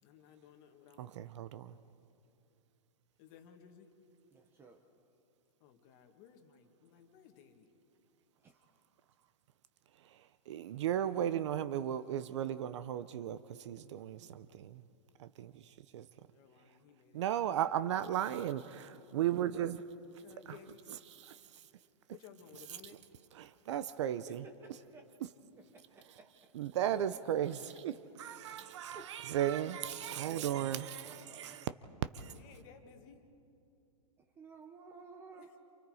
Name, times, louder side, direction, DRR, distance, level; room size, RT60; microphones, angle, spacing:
voice 1, 0.0-1.2 3.2-3.9 5.6-7.7 16.3-17.5 20.1-21.0 22.1-23.0 26.9-27.8 32.3-33.2 35.4-35.6, left 8 dB, 30° left, 1.7 m, -57 dB
voice 2, 1.0-1.8 10.5-14.8 15.2-16.1 17.1-19.8 20.5-20.6 21.1-21.4 23.3-24.4 26.5-27.9 28.2-31.7 32.1-32.3, right 11 dB, 50° right, 0.7 m, -36 dB
voice 3, 4.3-4.8 8.4-8.6 20.2-20.4 23.7-23.8 24.3-24.4 24.6-25.0 25.7-26.0 28.5-29.1 31.1-31.7 34.2-35.5, right 4 dB, 10° right, 0.8 m, -55 dB
28.5 x 28.5 x 4.9 m
hypercardioid pair, 165°, 20 cm